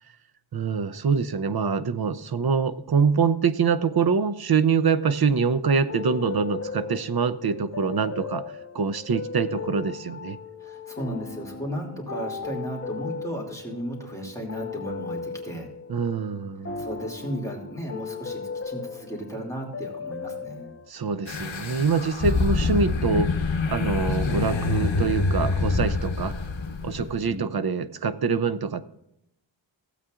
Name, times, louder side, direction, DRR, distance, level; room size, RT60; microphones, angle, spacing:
voice 1, 0.5-10.4 15.9-16.8 20.9-23.3 23.7-26.4 26.8-28.9, right 5 dB, 55° right, 13 dB, 0.6 m, -25 dB
sound 1, 5.9-20.9, left 5 dB, 30° left, 0.4 m, -37 dB
voice 2, 10.6-15.7 16.8-20.8 27.2-27.6, right 1 dB, 5° left, -2 dB, 2.5 m, -35 dB
sound 2, 21.3-27.2, left 3 dB, 75° left, 1.0 m, -26 dB
15.5 x 8.2 x 2.5 m, 0.82 s
wide cardioid pair, 85°, 47 cm